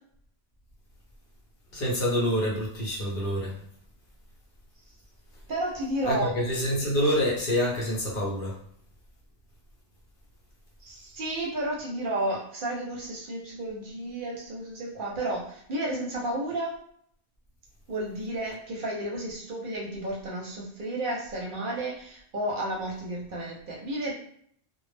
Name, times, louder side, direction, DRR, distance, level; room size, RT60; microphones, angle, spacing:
voice 1, 1.7-3.6 6.1-8.6, equal, 60° left, -2 dB, 0.8 m, -27 dB
voice 2, 5.5-6.3 10.8-16.8 17.9-24.1, right 1 dB, 55° right, -2 dB, 0.7 m, -32 dB
2.0 x 2.0 x 3.2 m, 0.64 s
omnidirectional pair, 1.1 m